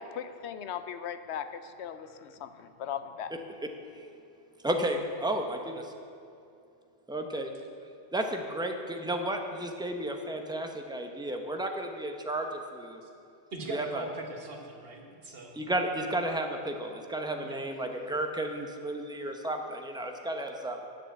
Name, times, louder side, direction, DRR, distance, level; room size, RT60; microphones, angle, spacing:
voice 1, 0.0-3.3, left 8 dB, 85° left, 11 dB, 0.9 m, -38 dB
voice 2, 4.6-5.9 7.1-7.5 8.1-13.0 13.7-14.0 15.5-20.9, right 1 dB, 5° right, 3 dB, 0.7 m, -33 dB
voice 3, 13.5-15.6 17.4-17.6, right 2 dB, 65° right, 2 dB, 1.5 m, -41 dB
10.0 x 6.8 x 7.8 m, 2.6 s
omnidirectional pair, 1.1 m